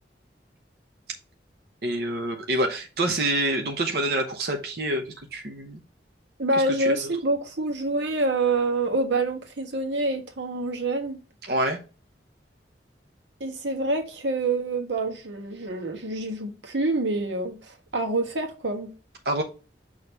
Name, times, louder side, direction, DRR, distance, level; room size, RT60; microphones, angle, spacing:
voice 1, 1.8-5.0 5.3-5.8 6.8-6.9 11.5-11.8 19.2-19.4, right 1 dB, 60° right, 0.9 m, -26 dB
voice 2, 6.4-11.2 13.4-18.9, right 2 dB, 90° right, 1.5 m, -26 dB
6.3 x 3.1 x 5.4 m
head